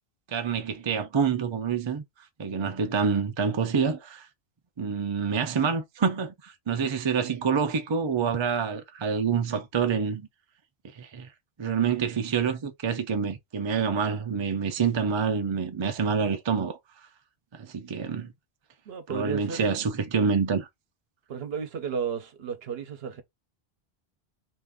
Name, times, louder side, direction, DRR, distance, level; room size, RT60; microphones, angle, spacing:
voice 1, 0.3-2.0 2.4-4.3 4.8-10.3 11.0-11.3 11.6-16.8 17.5-18.3 19.1-20.7, right 6 dB, 40° right, 0.4 m, -27 dB
voice 2, 18.9-19.6 21.3-23.2, right 6 dB, 70° right, 0.9 m, -33 dB
2.8 x 2.5 x 3.5 m
omnidirectional pair, 1.1 m